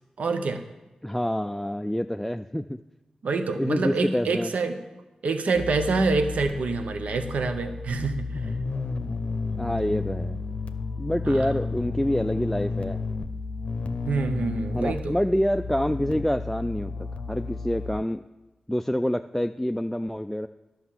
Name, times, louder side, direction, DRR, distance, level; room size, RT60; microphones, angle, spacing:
voice 1, 0.2-0.6 3.2-4.8 5.2-8.3 11.2-11.4 14.0-15.1, right 3 dB, 85° right, 8 dB, 0.7 m, -26 dB
voice 2, 1.0-2.8 3.6-4.5 9.6-10.4 11.0-13.0 14.7-18.2 18.7-20.5, equal, 5° left, 7 dB, 0.3 m, -27 dB
sound 1, 5.5-18.0, left 4 dB, 70° left, 0.6 m, -32 dB
11.0 x 5.8 x 7.2 m, 1.1 s
cardioid pair, 50°, 2 cm